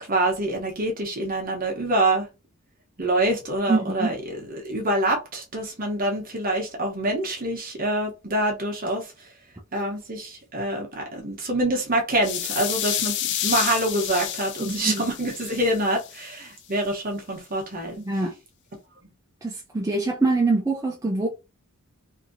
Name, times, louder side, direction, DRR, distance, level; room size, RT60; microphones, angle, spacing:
voice 1, 0.1-2.3 3.0-9.1 9.7-13.2 13.4-18.0, right 1 dB, 40° right, 0.9 m, -26 dB
voice 2, 3.7-4.1 14.6-15.0 18.0-18.3 19.4-21.3, right 3 dB, 15° right, 0.4 m, -24 dB
sound 1, 12.2-16.3, left 11 dB, 55° left, 0.4 m, -30 dB
2.8 x 2.7 x 2.6 m
head